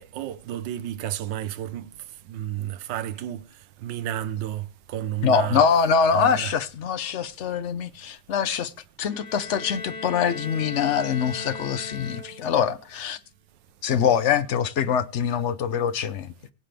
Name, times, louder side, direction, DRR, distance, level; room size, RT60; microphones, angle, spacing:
voice 1, 0.0-1.9 2.3-3.4 3.8-5.6 6.1-6.5, right 12 dB, 70° right, 1.4 m, -31 dB
voice 2, 5.2-8.7 9.0-13.2 13.8-16.3, left 7 dB, 85° left, 0.6 m, -24 dB
Bowed string instrument, 9.0-12.7, left 3 dB, 40° left, 4.2 m, -38 dB
22.5 x 7.6 x 3.4 m
omnidirectional pair, 2.2 m